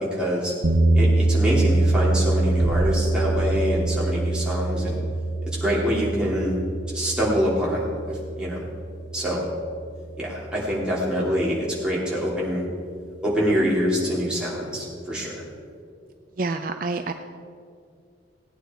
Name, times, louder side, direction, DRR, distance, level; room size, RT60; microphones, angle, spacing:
voice 1, 0.1-0.5 0.9-5.0 5.6-6.6 6.9-8.6 9.1-9.4 10.2-12.6 13.2-15.4, equal, 5° right, -7 dB, 3.0 m, -25 dB
sound 1, 0.6-10.7, right 2 dB, 85° right, 1.0 m, -24 dB
sound 2, 2.6-4.2, equal, 65° right, 1.1 m, -32 dB
voice 2, 16.4-17.1, right 3 dB, 45° right, 7 dB, 0.5 m, -27 dB
17.5 x 9.3 x 4.5 m, 2.3 s
head